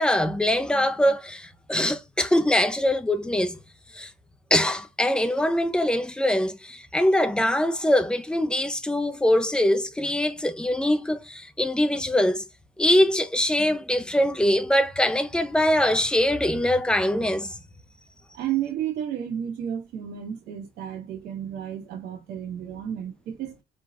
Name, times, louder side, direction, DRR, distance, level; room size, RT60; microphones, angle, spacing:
voice 1, 0.0-3.6 3.9-4.1 4.5-12.4 12.8-17.6, left 1 dB, 5° left, 0.7 m, -23 dB
voice 2, 18.3-23.6, right 10 dB, 80° right, 2.2 m, -32 dB
4.5 x 4.0 x 2.6 m
cardioid pair, 110°, 17 cm